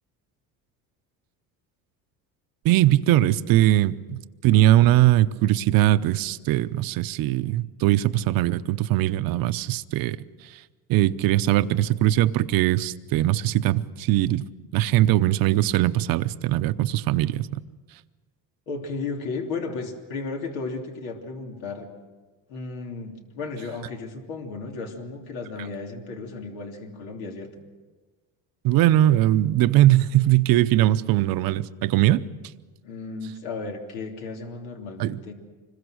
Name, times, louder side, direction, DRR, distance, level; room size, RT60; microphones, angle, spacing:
voice 1, 2.6-10.2 10.9-14.4 14.7-17.6 28.6-32.3 35.0-35.2, right 14 dB, 55° right, 0.8 m, -20 dB
voice 2, 18.7-21.9 22.5-27.6 32.8-35.3, left 4 dB, 85° left, 3.2 m, -34 dB
25.5 x 21.5 x 6.4 m
cardioid pair, 135°, 40 cm